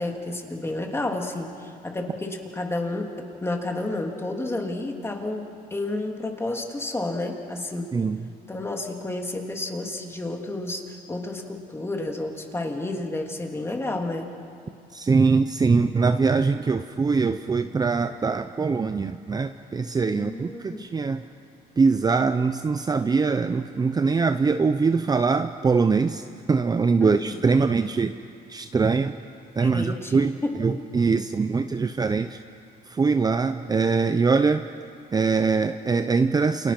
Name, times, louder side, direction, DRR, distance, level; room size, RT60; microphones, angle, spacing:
voice 1, 0.0-7.9 8.5-14.3 20.1-20.8 27.0-27.4 29.6-30.5, left 2 dB, 15° left, 2 dB, 3.1 m, -31 dB
voice 2, 7.9-8.3 14.9-21.2 21.8-28.2 28.5-29.2 29.6-32.4 32.9-34.7 35.1-36.7, right 4 dB, 25° right, 9 dB, 0.7 m, -23 dB
29.0 x 28.0 x 6.1 m, 2.5 s
cardioid pair, 110°, 17 cm